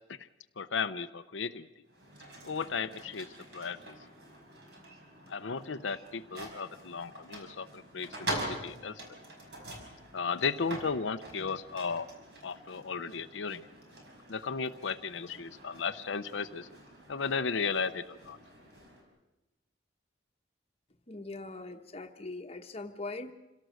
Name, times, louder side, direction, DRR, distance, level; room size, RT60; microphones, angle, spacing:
voice 1, 0.6-1.7 2.4-3.3 3.5-4.0 5.3-9.0 10.1-12.1 12.4-13.7 14.3-16.7 17.1-18.4, left 5 dB, 85° left, 9 dB, 0.7 m, -35 dB
sound 1, 1.9-19.0, right 1 dB, 60° right, 5.3 m, -45 dB
voice 2, 21.1-23.3, left 2 dB, 35° left, 5 dB, 1.1 m, -41 dB
27.0 x 17.5 x 6.4 m, 1.0 s
head